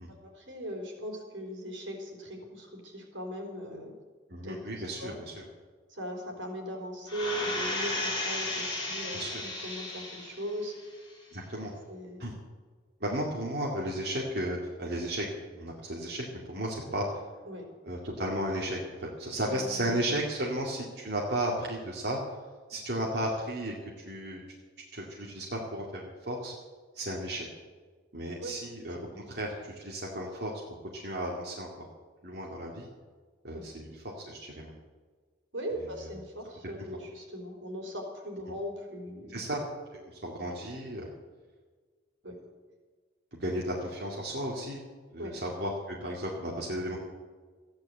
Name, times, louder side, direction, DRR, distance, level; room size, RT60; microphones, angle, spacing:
voice 1, 0.2-3.9 4.4-5.2 5.9-9.3 9.5-10.7 11.9-12.3 17.4-17.7 19.5-20.0 28.4-28.5 29.0-29.2 33.5-33.6 35.5-39.4 40.4-40.6 42.2-42.4 45.2-45.3, equal, 80° right, 2 dB, 4.1 m, -39 dB
voice 2, 4.3-5.4 9.1-9.4 11.3-11.7 12.2-12.3 13.0-17.2 17.8-22.2 22.7-23.7 24.0-24.4 24.9-26.5 26.9-27.5 28.1-29.0 29.3-30.5 30.9-31.7 32.2-32.9 33.4-33.9 34.3-34.7 39.3-39.6 39.9-41.1 43.3-44.8 45.1-47.0, right 1 dB, 60° right, -3 dB, 2.3 m, -34 dB
sound 1, 7.1-10.5 10.9-11.0, left 2 dB, 20° left, 5.5 m, -34 dB
14.5 x 10.5 x 7.9 m, 1.5 s
head